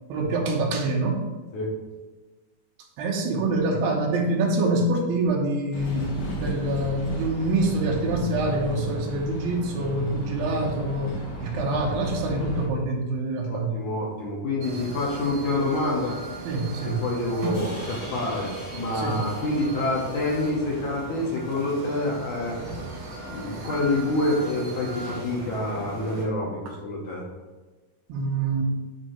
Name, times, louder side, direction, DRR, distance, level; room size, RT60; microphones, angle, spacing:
voice 1, 0.1-1.2 3.0-13.8 16.5-17.0 18.9-19.2 26.7-26.8 28.1-28.7, right 2 dB, 85° right, 0 dB, 2.7 m, -26 dB
sound 1, 5.7-12.7, left 1 dB, 90° left, 1.1 m, -34 dB
voice 2, 13.5-16.2 17.0-22.6 23.3-27.3, left 2 dB, 70° left, -3 dB, 2.0 m, -27 dB
sound 2, 14.6-26.2, right 2 dB, 65° right, 1.3 m, -37 dB
sound 3, 17.5-21.9, left 2 dB, 50° left, 0.7 m, -45 dB
7.9 x 2.7 x 4.4 m, 1.3 s
omnidirectional pair, 4.1 m